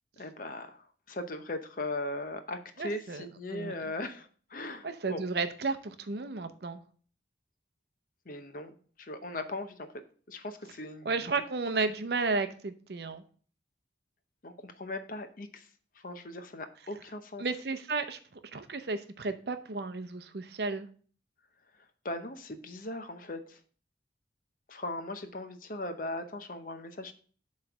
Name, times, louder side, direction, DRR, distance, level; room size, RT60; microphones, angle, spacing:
voice 1, 0.2-5.2 8.3-9.9 10.3-11.1 14.4-15.7 16.0-17.4 22.0-23.6 24.7-27.1, left 2 dB, 50° left, 8 dB, 0.7 m, -39 dB
voice 2, 2.8-3.2 3.5-3.7 4.8-6.8 11.0-13.2 17.4-18.2 18.5-20.9, right 3 dB, 60° right, 10 dB, 0.6 m, -33 dB
7.7 x 3.2 x 5.8 m, 0.43 s
head